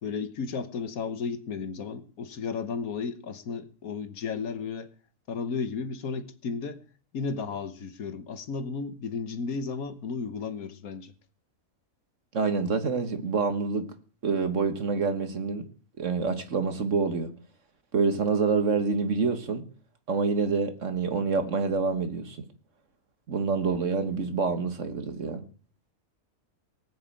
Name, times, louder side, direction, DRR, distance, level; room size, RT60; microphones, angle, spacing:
voice 1, 0.0-4.9 5.3-6.8 7.1-11.1, left 5 dB, 75° left, 1.6 m, -34 dB
voice 2, 12.3-13.9 14.2-15.7 16.0-17.3 17.9-19.6 20.1-22.5 23.3-25.4, right 4 dB, 55° right, 1.8 m, -27 dB
19.0 x 6.4 x 8.9 m
omnidirectional pair, 1.5 m